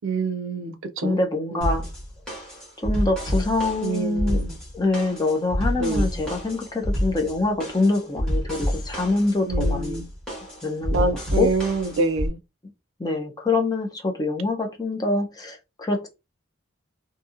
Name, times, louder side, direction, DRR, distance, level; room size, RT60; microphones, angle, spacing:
voice 1, 0.0-1.2 1.5-1.7 3.8-4.5 5.8-6.1 9.5-10.1 10.9-12.4, right 3 dB, 70° right, 0.4 m, -26 dB
voice 2, 1.0-1.9 2.8-4.4 4.7-10.0 10.6-11.5 13.0-16.1, left 2 dB, 20° left, 0.5 m, -25 dB
sound 1, 1.6-12.3, equal, 5° left, 1.3 m, -28 dB
2.7 x 2.6 x 2.4 m
head